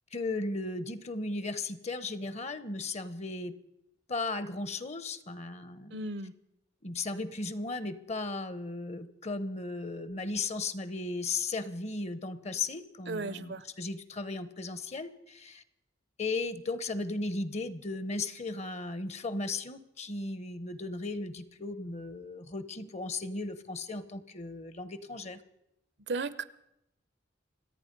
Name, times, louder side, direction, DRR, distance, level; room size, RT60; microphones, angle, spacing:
voice 1, 0.1-3.5 4.1-6.1 6.8-15.6 16.2-25.4, left 3 dB, 35° left, 14 dB, 0.9 m, -36 dB
voice 2, 5.9-6.3 13.1-13.6 26.1-26.4, right 3 dB, 65° right, 16 dB, 0.7 m, -35 dB
26.5 x 9.0 x 5.3 m, 0.83 s
head